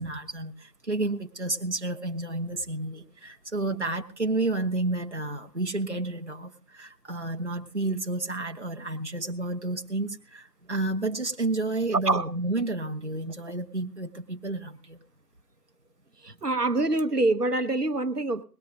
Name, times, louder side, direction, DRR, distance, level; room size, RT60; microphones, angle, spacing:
voice 1, 0.0-15.0, right 2 dB, 45° right, 1.0 m, -31 dB
voice 2, 11.9-12.3 16.2-18.4, right 2 dB, 70° right, 1.0 m, -25 dB
19.0 x 12.5 x 3.6 m
figure-of-eight pair, 170°, 49 cm